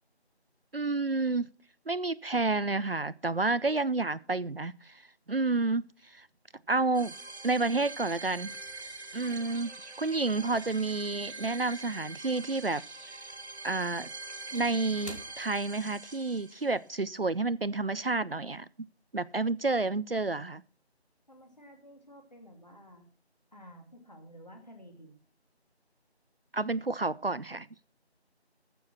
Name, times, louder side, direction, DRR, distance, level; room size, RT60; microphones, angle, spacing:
voice 1, 0.7-1.5 1.9-5.0 5.3-6.3 6.7-7.1 7.4-8.5 9.1-9.7 10.0-12.8 13.6-14.1 14.5-18.7 19.1-20.6 26.5-27.7, right 3 dB, 60° right, 0.5 m, -30 dB
sound 1, 5.0-5.6 5.9-7.8 8.1-12.8 13.1-16.4 16.7-16.9 17.4-17.6, equal, 90° left, 3.0 m, -55 dB
sound 2, 6.9-16.9, right 3 dB, 80° right, 2.0 m, -44 dB
voice 2, 9.1-9.5 21.3-23.1 23.5-25.1, equal, 40° left, 2.6 m, -52 dB
14.0 x 7.0 x 5.9 m
figure-of-eight pair, 175°, 33 cm